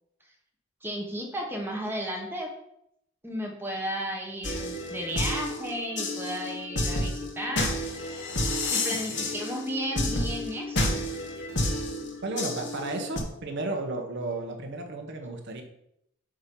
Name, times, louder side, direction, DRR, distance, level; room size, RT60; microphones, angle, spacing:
voice 1, 0.8-2.5 3.2-7.8 8.7-11.1, equal, 10° right, 1 dB, 1.1 m, -34 dB
sound 1, 4.4-13.2, left 1 dB, 50° left, 1.2 m, -30 dB
voice 2, 9.0-9.3 12.2-15.6, right 2 dB, 50° right, 3 dB, 1.0 m, -33 dB
8.7 x 3.0 x 5.2 m, 0.77 s
head